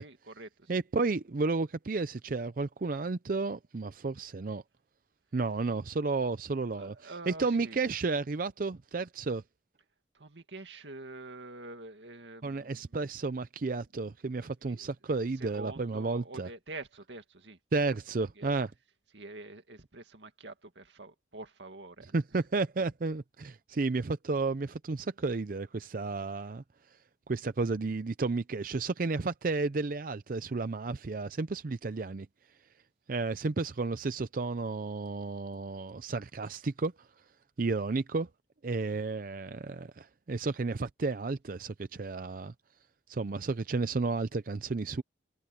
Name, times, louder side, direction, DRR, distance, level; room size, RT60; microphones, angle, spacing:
voice 1, 0.0-0.8 6.7-7.8 10.1-12.9 14.4-14.9 15.4-17.6 18.4-18.5 19.1-22.1, right 2 dB, 90° right, 2.2 m, -46 dB
voice 2, 0.7-4.6 5.3-9.4 12.4-16.5 17.7-18.7 22.1-27.0 27.3-32.3 33.1-37.1 37.6-38.3 38.6-42.5 43.1-45.0, right 3 dB, 50° right, 0.5 m, -32 dB
head